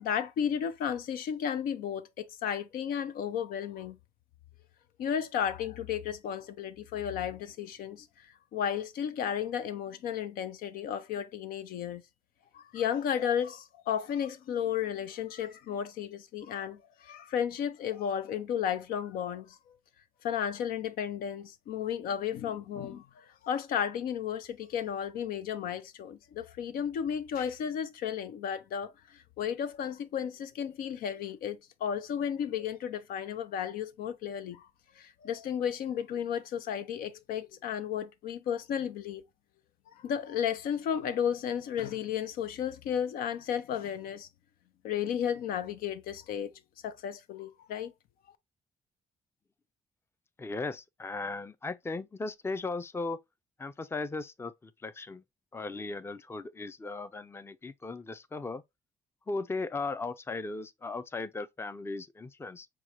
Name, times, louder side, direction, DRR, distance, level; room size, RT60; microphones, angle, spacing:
voice 1, 0.0-4.0 5.0-12.0 12.5-19.6 20.2-34.7 35.0-39.2 40.0-44.3 44.8-46.5 46.8-47.9, left 8 dB, 85° left, 0.5 m, -33 dB
voice 2, 50.4-53.2 53.6-55.2 55.5-58.6 59.3-62.7, left 3 dB, 15° left, 0.4 m, -37 dB
6.0 x 2.3 x 2.8 m
cardioid pair, 75°, 15 cm